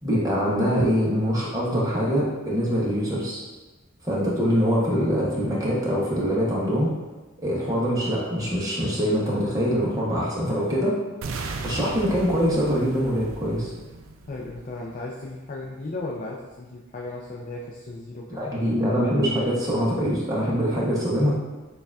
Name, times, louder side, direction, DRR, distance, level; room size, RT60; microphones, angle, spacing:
voice 1, 0.0-3.4 4.0-6.9 7.4-11.0 11.6-13.7 18.3-21.3, equal, 15° right, -6 dB, 0.8 m, -24 dB
sound 1, 11.2-15.2, right 3 dB, 65° right, 0.4 m, -36 dB
voice 2, 14.3-18.5, left 2 dB, 35° left, -2 dB, 0.4 m, -35 dB
6.4 x 2.3 x 2.3 m, 1.2 s
head